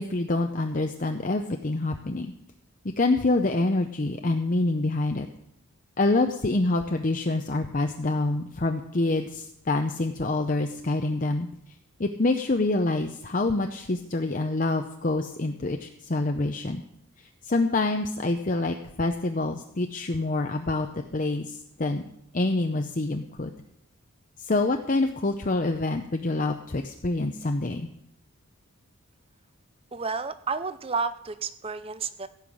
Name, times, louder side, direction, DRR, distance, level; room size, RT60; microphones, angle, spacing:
voice 1, 0.0-2.3 3.0-5.3 6.0-11.5 12.0-16.8 17.4-22.0 22.3-23.5 24.4-27.9, left 2 dB, 35° left, 5 dB, 0.7 m, -26 dB
voice 2, 29.9-32.3, right 4 dB, 25° right, 12 dB, 0.6 m, -31 dB
16.5 x 5.7 x 8.5 m, 0.75 s
head